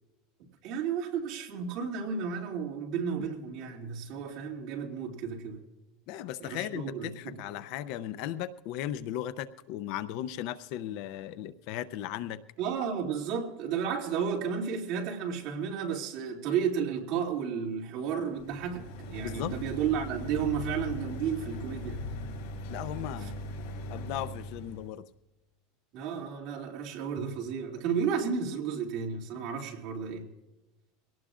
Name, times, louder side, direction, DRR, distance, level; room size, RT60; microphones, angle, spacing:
voice 1, 0.6-5.6 6.4-7.4 12.6-22.0 23.2-23.3 25.9-30.2, right 7 dB, 45° right, 0 dB, 2.6 m, -32 dB
voice 2, 6.1-12.4 19.2-19.5 22.7-23.4 23.9-25.0, left 12 dB, 50° left, 14 dB, 0.5 m, -36 dB
sound 1, 18.3-24.9, left 1 dB, 75° left, 4.3 m, -39 dB
23.5 x 18.0 x 2.5 m, 1.0 s
supercardioid pair, 170°, 0 cm